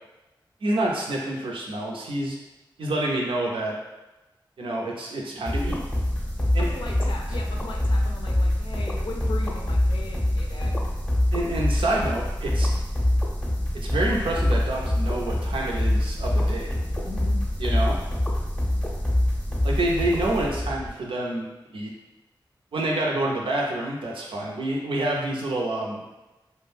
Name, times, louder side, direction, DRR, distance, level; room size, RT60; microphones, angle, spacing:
voice 1, 0.6-2.3 2.8-3.8 4.6-5.8 6.5-6.7 11.3-12.7 13.7-16.8 17.6-18.0 19.6-21.5 21.7-21.9 22.7-26.0, right 1 dB, 85° right, -2 dB, 0.5 m, -27 dB
sound 1, 5.5-20.9, left 1 dB, 10° left, 0.6 m, -25 dB
voice 2, 6.6-10.8 17.0-17.4 19.8-19.9, left 2 dB, 75° left, 0 dB, 0.5 m, -38 dB
2.4 x 2.1 x 3.2 m, 1.0 s
cardioid pair, 45°, 9 cm